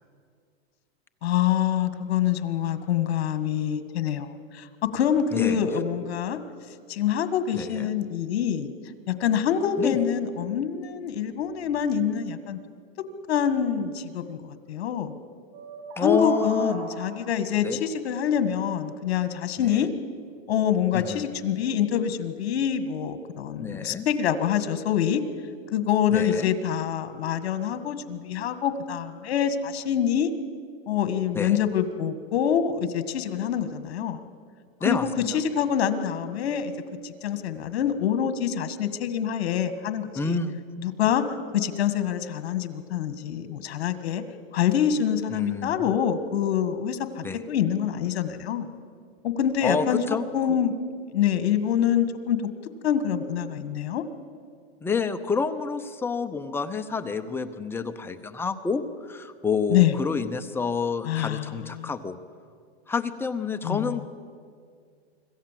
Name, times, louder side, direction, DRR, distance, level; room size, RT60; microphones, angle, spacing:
voice 1, 1.2-4.7 4.9-6.4 6.9-8.7 9.1-12.6 13.0-15.2 16.0-19.9 20.5-25.2 25.7-30.3 30.9-34.2 34.9-36.7 37.0-40.3 40.8-41.2 41.5-44.2 44.5-48.7 49.2-50.8 51.1-52.4 52.8-54.0 59.7-59.9 61.0-61.9 63.6-64.0, left 9 dB, 75° left, 11 dB, 1.8 m, -26 dB
voice 2, 5.3-5.6 7.6-7.9 9.8-10.0 16.0-16.7 17.6-17.8 19.6-19.9 20.9-21.2 23.6-24.1 26.1-26.5 31.3-31.6 34.8-35.4 40.1-40.5 45.3-45.8 47.2-47.4 49.6-50.2 54.8-62.2 62.9-64.1, left 5 dB, 5° left, 8 dB, 0.6 m, -28 dB
sound 1, 15.5-17.3, right 2 dB, 50° right, 6.7 m, -38 dB
25.5 x 14.5 x 7.5 m, 2.1 s
supercardioid pair, 150°, 32 cm